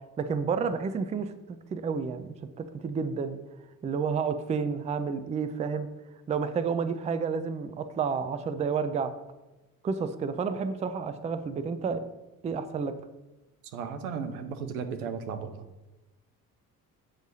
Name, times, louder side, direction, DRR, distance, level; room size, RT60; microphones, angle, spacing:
voice 1, 0.2-1.3 1.7-3.4 3.8-5.9 6.3-9.1 9.8-12.0 12.4-12.9, right 5 dB, 15° right, 11 dB, 0.4 m, -30 dB
voice 2, 13.7-15.7, right 6 dB, 80° right, 8 dB, 0.7 m, -35 dB
8.0 x 4.6 x 2.7 m, 1.0 s
hypercardioid pair, 55°, 44 cm